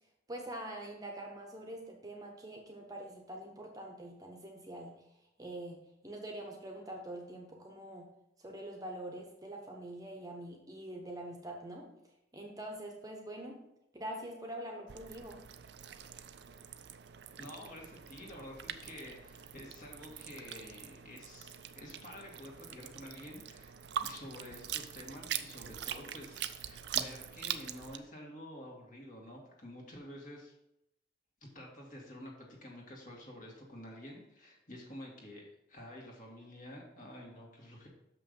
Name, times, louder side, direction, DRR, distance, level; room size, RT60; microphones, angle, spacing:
voice 1, 0.3-5.0 5.4-8.1 8.4-11.9 12.3-13.6 13.9-15.4, right 1 dB, 20° right, 1 dB, 0.9 m, -44 dB
sound 1, 14.9-28.0, right 9 dB, 60° right, 0.4 m, -43 dB
voice 2, 17.4-30.5 31.4-37.9, left 1 dB, 45° left, -1 dB, 1.9 m, -49 dB
6.5 x 5.7 x 5.3 m, 0.83 s
head